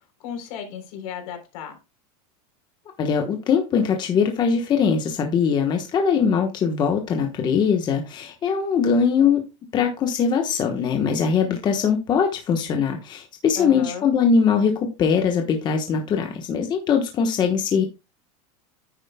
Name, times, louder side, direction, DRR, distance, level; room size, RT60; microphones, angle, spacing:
voice 1, 0.2-1.8 13.6-14.1, left 8 dB, 65° left, 3.6 m, -34 dB
voice 2, 3.0-9.4 9.7-17.8, left 6 dB, 25° left, 1.1 m, -21 dB
9.9 x 9.0 x 2.2 m
supercardioid pair, 165°, 18 cm